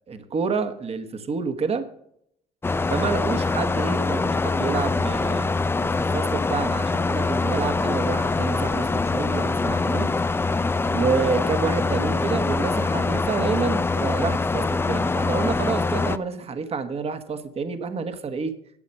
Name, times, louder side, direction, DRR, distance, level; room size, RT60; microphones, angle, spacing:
voice 1, 0.1-1.9 2.9-5.5 5.8-10.1 10.9-18.5, right 5 dB, 35° right, 8 dB, 1.3 m, -28 dB
sound 1, 2.6-16.2, left 3 dB, 15° left, 0.5 m, -24 dB
12.0 x 8.3 x 5.4 m, 0.70 s
cardioid pair, 110°, 17 cm